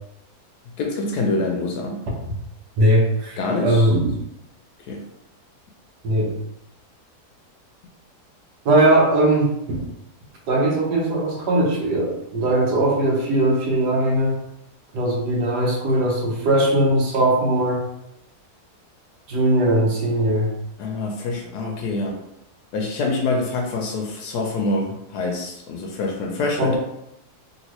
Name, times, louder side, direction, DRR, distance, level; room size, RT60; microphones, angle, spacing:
voice 1, 0.8-2.0 3.4-3.9 4.9-5.1 20.8-22.2 22.7-26.8, left 2 dB, 80° left, 1 dB, 1.1 m, -25 dB
voice 2, 2.8-4.0 6.0-6.3 8.6-9.8 10.5-14.4 14.9-17.9 19.3-20.5 26.6-26.8, right 1 dB, 80° right, -1 dB, 1.3 m, -19 dB
3.0 x 2.8 x 2.9 m, 0.81 s
omnidirectional pair, 1.7 m